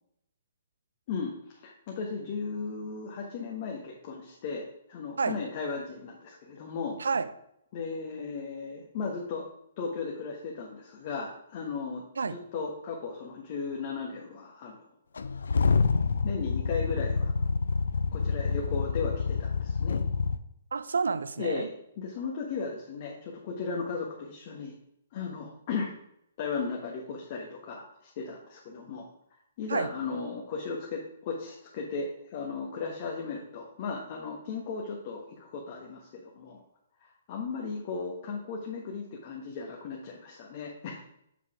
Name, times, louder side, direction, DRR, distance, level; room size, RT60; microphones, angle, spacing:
voice 1, 1.1-7.0 7.7-9.5 9.8-14.8 16.2-17.3 18.1-20.0 21.4-21.7 22.0-24.7 25.1-25.9 26.4-29.1 29.6-36.6 37.3-41.0, left 4 dB, 45° left, -1 dB, 1.4 m, -36 dB
sound 1, 15.2-20.4, left 5 dB, 70° left, 0.5 m, -27 dB
voice 2, 20.7-21.7 29.7-29.9, right 5 dB, 75° right, 12 dB, 0.6 m, -29 dB
7.4 x 5.4 x 4.8 m, 0.77 s
figure-of-eight pair, 125°, 0 cm